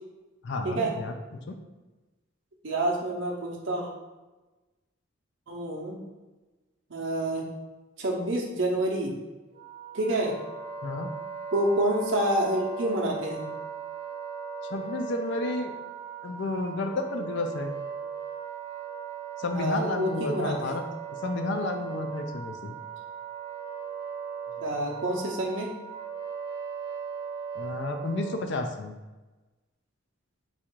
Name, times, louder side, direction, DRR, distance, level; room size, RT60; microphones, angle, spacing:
voice 1, 0.4-1.1 1.5-1.6 10.8-11.1 14.7-15.7 16.2-17.7 19.4-20.8 21.2-22.7 27.6-28.9, left 2 dB, 60° left, 5 dB, 0.4 m, -31 dB
voice 2, 2.6-3.9 5.5-6.0 6.9-7.4 8.0-9.2 9.9-10.3 11.5-13.5 19.5-20.8 24.6-25.7, right 1 dB, 65° right, -2 dB, 0.8 m, -28 dB
Wind instrument woodwind instrument, 9.5-28.6, right 6 dB, 30° right, 0.6 m, -38 dB
4.1 x 2.5 x 4.5 m, 1.1 s
head